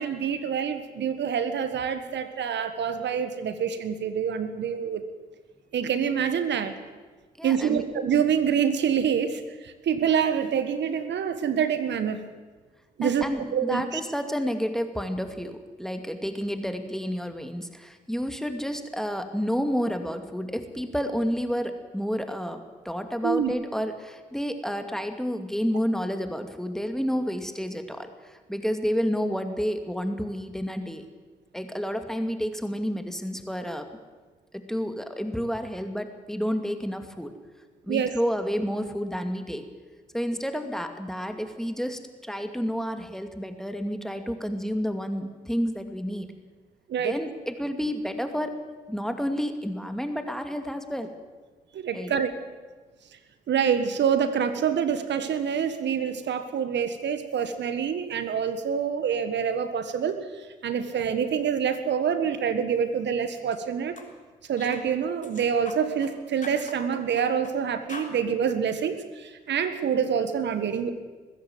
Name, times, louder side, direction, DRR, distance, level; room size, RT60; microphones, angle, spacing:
voice 1, 0.0-5.0 5.7-6.7 7.4-12.2 13.0-13.2 13.5-14.0 23.2-23.5 37.9-38.1 46.9-47.1 51.7-52.3 53.5-63.9 64.5-70.9, right 7 dB, 65° right, 10 dB, 1.6 m, -26 dB
voice 2, 7.4-7.9 13.0-31.0 31.5-33.9 34.5-37.3 37.8-39.6 40.1-46.3 47.0-48.5 48.9-51.1 51.9-52.1, equal, ahead, 7 dB, 2.4 m, -30 dB
sound 1, 63.4-63.6 64.0-64.1 64.6-64.8 65.2-66.1 66.4-67.6 67.9-68.1, left 3 dB, 40° left, 3.9 m, -43 dB
21.5 x 15.5 x 8.0 m, 1.3 s
hypercardioid pair, 40°, 20 cm